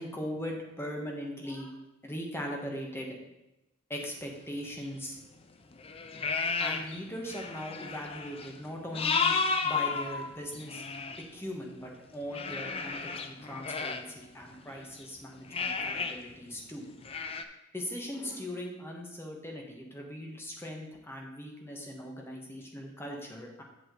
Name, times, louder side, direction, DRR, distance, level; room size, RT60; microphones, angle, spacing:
voice 1, 0.0-1.7 2.0-3.2 3.9-5.2 6.6-9.4 9.6-10.8 11.3-16.9 17.7-23.6, equal, 15° left, 0 dB, 1.3 m, -40 dB
sound 1, 4.8-4.9 5.7-7.0 7.3-11.2 12.3-15.0 15.5-16.2 16.5-16.6 17.0-17.4, left 5 dB, 30° left, 0.5 m, -32 dB
8.2 x 6.9 x 3.8 m, 0.95 s
head